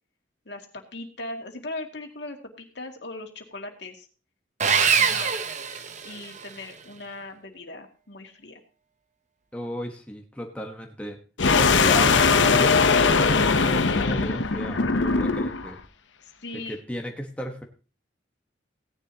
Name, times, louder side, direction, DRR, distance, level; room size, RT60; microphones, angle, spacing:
voice 1, 0.5-4.1 5.0-5.4 6.0-8.6 16.4-16.8, left 2 dB, 70° left, 2 dB, 2.3 m, -39 dB
Sawing, 4.6-6.5, right 6 dB, 40° right, 0.9 m, -23 dB
voice 2, 9.5-11.2 11.6-15.8 16.5-17.6, equal, 5° left, 1 dB, 1.2 m, -34 dB
sound 1, 11.4-15.7, left 4 dB, 90° left, 0.9 m, -20 dB
17.0 x 10.5 x 2.9 m, 0.35 s
head